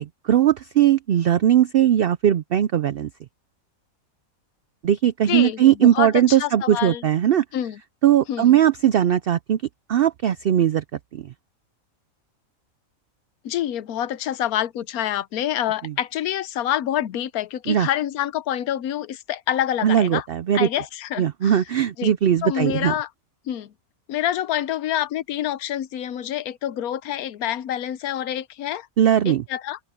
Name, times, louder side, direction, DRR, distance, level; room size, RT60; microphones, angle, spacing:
voice 1, 0.0-3.1 4.8-7.4 8.0-9.6 9.9-10.8 11.1-11.3 15.8-15.9 17.7-17.9 19.8-20.7 21.2-22.9 29.0-29.4, right 10 dB, 80° right, 0.5 m, -19 dB
voice 2, 5.3-7.1 7.5-7.8 8.3-8.6 13.4-20.2 20.5-21.6 22.0-22.1 22.4-23.1 23.5-23.7 24.1-28.9 29.2-29.8, left 11 dB, 80° left, 1.2 m, -27 dB
omnidirectional pair, 1.5 m